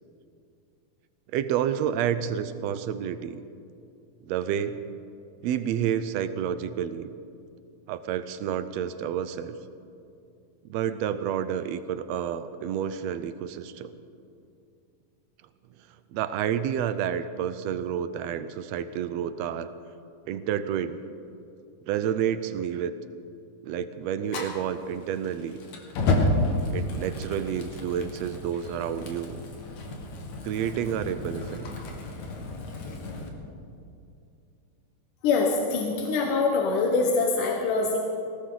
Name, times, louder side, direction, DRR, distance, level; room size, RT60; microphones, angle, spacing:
voice 1, 1.3-3.4 4.3-4.8 5.4-7.1 7.9-9.6 10.6-13.9 16.1-19.7 20.3-21.0 21.9-22.9 23.6-25.6 26.7-29.4 30.4-31.6, right 9 dB, 75° right, 12 dB, 1.6 m, -29 dB
Fire, 24.3-33.3, left 2 dB, 65° left, 3.0 m, -31 dB
voice 2, 35.2-38.0, left 4 dB, 85° left, 0 dB, 2.9 m, -24 dB
20.0 x 18.0 x 4.0 m, 2.6 s
omnidirectional pair, 3.6 m